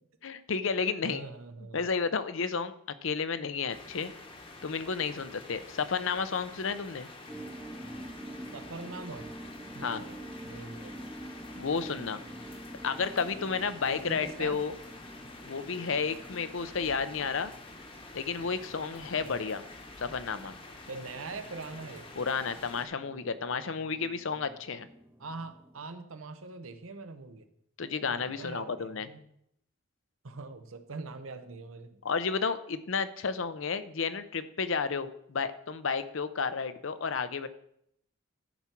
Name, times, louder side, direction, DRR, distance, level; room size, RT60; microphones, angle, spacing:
voice 1, 0.2-1.2 1.7-2.7 3.0-4.1 4.6-7.1 9.8-10.0 11.6-12.2 12.8-14.7 15.4-17.5 18.1-19.6 20.0-20.5 22.2-24.9 27.8-29.1 32.0-37.5, left 5 dB, 70° left, 12 dB, 0.6 m, -32 dB
voice 2, 1.0-1.9 8.5-9.3 9.7-11.0 13.8-14.6 19.2-19.6 20.9-22.1 25.2-27.5 28.1-29.2 30.2-32.0, right 3 dB, 80° right, 8 dB, 0.9 m, -43 dB
sound 1, 3.7-22.9, left 2 dB, 25° left, 1.0 m, -48 dB
sound 2, 7.3-25.9, right 1 dB, 10° right, 0.5 m, -48 dB
12.0 x 5.9 x 4.5 m, 0.75 s
head